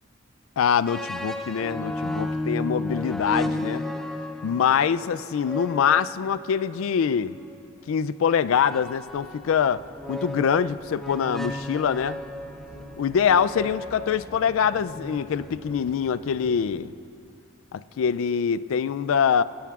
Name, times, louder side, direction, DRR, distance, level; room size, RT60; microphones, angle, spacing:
voice 1, 0.6-3.8 4.4-7.4 7.9-9.8 10.1-12.2 13.0-16.9 17.7-19.4, left 7 dB, 75° left, 16 dB, 0.3 m, -24 dB
sound 1, 0.9-7.6 8.6-16.0, left 1 dB, ahead, 0.4 m, -34 dB
sound 2, 8.8-16.7, equal, 85° right, 3.4 m, -49 dB
20.5 x 16.5 x 2.4 m, 2.6 s
head